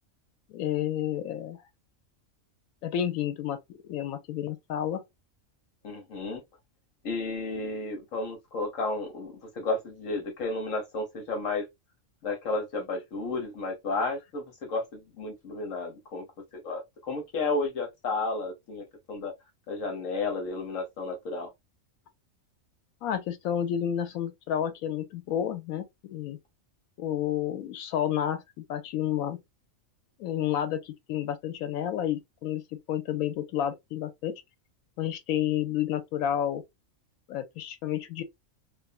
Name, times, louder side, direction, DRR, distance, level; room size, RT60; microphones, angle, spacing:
voice 1, 0.5-1.6 2.8-5.0 23.0-26.4 27.0-29.4 30.2-34.3 35.0-36.6 37.3-38.2, left 10 dB, 90° left, 1.1 m, -30 dB
voice 2, 5.8-6.4 7.0-11.7 12.2-16.2 16.6-19.3 19.7-21.5, left 3 dB, 70° left, 1.3 m, -32 dB
2.5 x 2.4 x 2.4 m
omnidirectional pair, 1.4 m